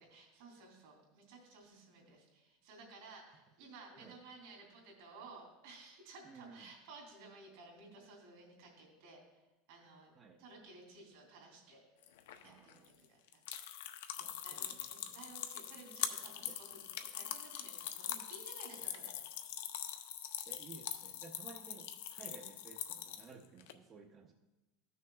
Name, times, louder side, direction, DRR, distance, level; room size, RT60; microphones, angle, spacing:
voice 1, 0.0-9.2 9.7-10.1 10.4-11.8 12.4-12.8 13.1-13.4 14.1-19.2, right 3 dB, 65° right, 1 dB, 2.8 m, -56 dB
voice 2, 6.2-6.7 10.2-10.5 12.4-12.9 14.2-15.3 16.4-16.6 18.7-18.9 19.1-19.2 20.5-24.3, right 4 dB, 20° right, 3 dB, 0.4 m, -56 dB
sound 1, 12.0-23.7, left 10 dB, 85° left, 0.6 m, -43 dB
14.5 x 6.3 x 2.3 m, 1.1 s
supercardioid pair, 175°, 0 cm